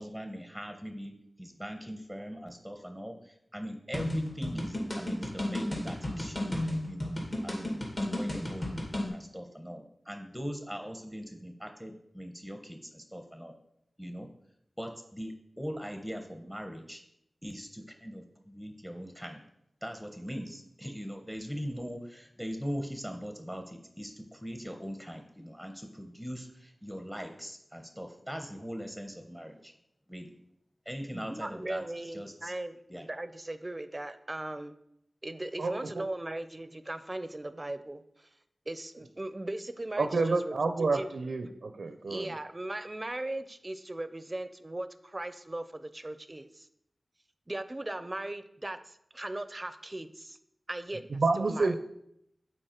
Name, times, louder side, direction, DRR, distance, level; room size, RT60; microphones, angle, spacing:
voice 1, 0.0-6.5 6.9-7.1 7.4-8.8 9.1-13.6 14.0-14.3 14.8-17.0 17.4-19.4 19.8-29.7 30.1-30.3 30.8-32.5 32.9-33.1, equal, 5° left, 5 dB, 0.9 m, -41 dB
sound 1, 3.9-9.1, left 1 dB, 40° left, 2.2 m, -33 dB
voice 2, 31.1-34.8 35.2-38.3 38.7-41.1 42.1-46.7 47.5-50.4 50.7-51.8, right 1 dB, 30° right, 12 dB, 0.5 m, -38 dB
voice 3, 35.6-36.0 40.0-42.3 51.1-51.8, right 3 dB, 85° right, 7 dB, 0.5 m, -29 dB
7.8 x 4.3 x 4.4 m, 0.77 s
wide cardioid pair, 55°, 0 cm